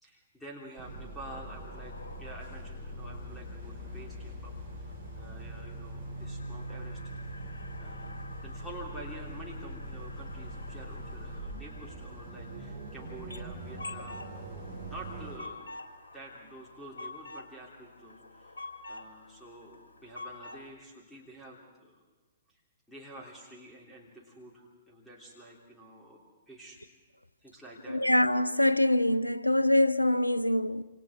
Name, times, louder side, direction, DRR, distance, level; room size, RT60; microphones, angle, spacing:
voice 1, 0.0-7.1 7.8-8.2 8.4-14.4 14.8-15.7 16.1-18.6 18.9-22.0 22.5-22.6 22.9-26.2 26.5-26.8 27.4-28.0, right 1 dB, ahead, 3.2 m, -48 dB
sound 1, 0.8-15.4, right 1 dB, 45° right, 7.4 m, -42 dB
sound 2, 1.2-20.7, left 2 dB, 65° left, 2.0 m, -49 dB
voice 2, 27.9-30.8, left 1 dB, 85° left, 0.6 m, -24 dB
27.0 x 27.0 x 3.7 m
figure-of-eight pair, 115°, 0 cm